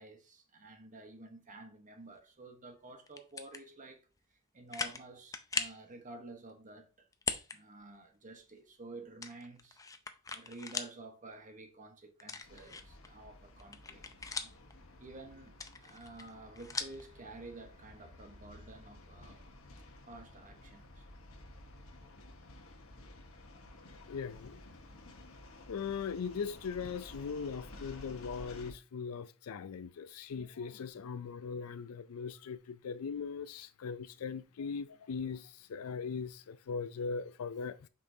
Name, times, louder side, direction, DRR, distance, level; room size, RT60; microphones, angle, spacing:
voice 1, 0.0-4.0 4.5-7.1 7.5-9.8 10.3-14.5 15.0-19.5 20.1-21.1, right 2 dB, 35° right, 1.1 m, -51 dB
sound 1, 3.1-3.6 4.2-4.3 4.7-5.0 5.3-5.8 7.1-7.6 7.9-8.0 9.2-10.9 11.3-11.4 12.2-13.1 13.5-14.7 15.5-17.0, left 4 dB, 15° left, 0.5 m, -39 dB
sound 2, 12.4-28.7, left 2 dB, 70° left, 1.1 m, -53 dB
voice 2, 24.1-24.6 25.7-37.9, left 5 dB, 85° left, 0.4 m, -40 dB
6.5 x 5.5 x 2.7 m
head